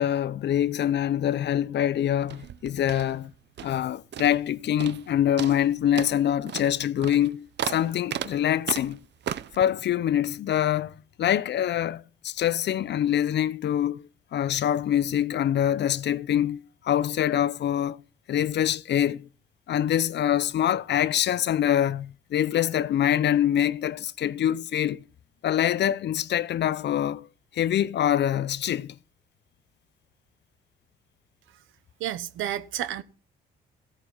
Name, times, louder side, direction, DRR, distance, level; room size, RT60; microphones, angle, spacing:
voice 1, 0.0-3.3 3.6-9.0 9.5-18.0 18.3-19.3 19.7-25.0 25.4-27.3 27.5-29.0, left 10 dB, 60° left, 0.7 m, -25 dB
sound 1, 2.2-3.9 4.1-4.5 4.8-5.1 5.4-9.6, right 10 dB, 60° right, 0.7 m, -35 dB
voice 2, 32.0-33.0, right 12 dB, 80° right, 1.2 m, -31 dB
16.0 x 8.9 x 5.6 m
cardioid pair, 90°, 20 cm